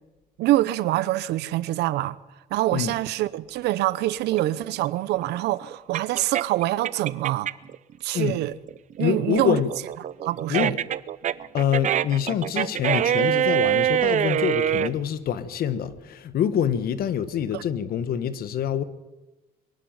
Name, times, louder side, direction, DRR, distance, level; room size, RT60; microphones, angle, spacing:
voice 1, 0.4-2.2 2.5-7.5 8.0-8.5 9.0-9.6 10.2-10.7 17.5-17.6, right 16 dB, 80° right, 0.9 m, -25 dB
sound 1, 4.3-7.7 8.1-14.9, right 10 dB, 45° right, 0.7 m, -25 dB
voice 2, 9.0-9.7 10.5-10.8 11.5-18.8, left 9 dB, 60° left, 1.5 m, -25 dB
23.5 x 11.5 x 9.5 m
cardioid pair, 110°, 17 cm